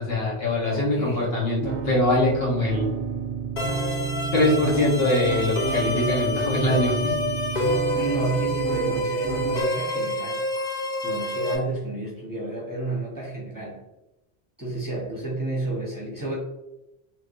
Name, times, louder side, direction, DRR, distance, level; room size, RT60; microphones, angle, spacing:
voice 1, 0.0-2.9 4.3-7.1, left 1 dB, 65° left, -4 dB, 1.3 m, -23 dB
voice 2, 0.6-1.3 7.9-10.5 11.0-13.9 14.6-16.4, right 2 dB, 20° right, -5 dB, 0.8 m, -31 dB
sound 1, 1.6-9.6, right 6 dB, 65° right, 0.7 m, -31 dB
sound 2, 3.6-11.6, left 1 dB, 45° left, 0.8 m, -28 dB
3.3 x 3.0 x 2.5 m, 0.94 s
omnidirectional pair, 1.1 m